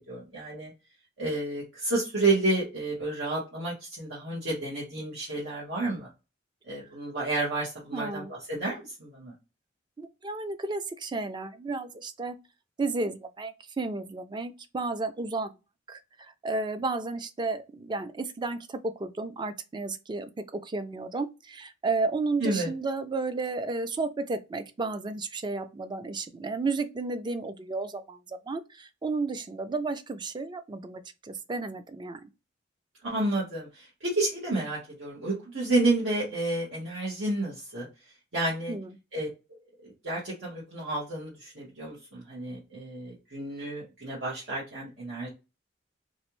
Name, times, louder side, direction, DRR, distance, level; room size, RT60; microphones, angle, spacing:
voice 1, 0.1-0.7 1.2-6.1 6.7-9.3 22.4-22.7 33.0-37.9 38.3-38.7 39.1-39.3 39.8-45.3, right 2 dB, 85° right, 1.5 m, -30 dB
voice 2, 7.9-8.3 10.0-12.4 12.8-15.5 15.9-20.3 20.6-32.2 38.7-39.0, right 3 dB, 25° right, 0.4 m, -32 dB
3.1 x 2.6 x 2.9 m
head